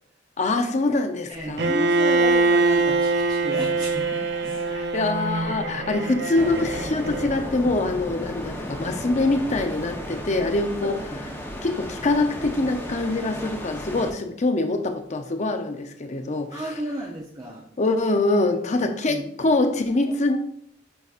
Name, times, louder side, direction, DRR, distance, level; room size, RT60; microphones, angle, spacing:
voice 1, 0.4-1.7 4.7-11.0 11.6-16.6 17.8-20.4, left 2 dB, 40° left, 7 dB, 0.6 m, -24 dB
voice 2, 1.3-4.6 10.8-11.2 16.5-17.6 18.7-19.2, right 1 dB, 20° right, -2 dB, 0.7 m, -33 dB
Bowed string instrument, 1.6-7.6, right 3 dB, 65° right, 0.6 m, -23 dB
sound 1, 6.3-14.1, equal, 15° left, 0.9 m, -34 dB
9.5 x 4.0 x 2.5 m, 0.70 s
head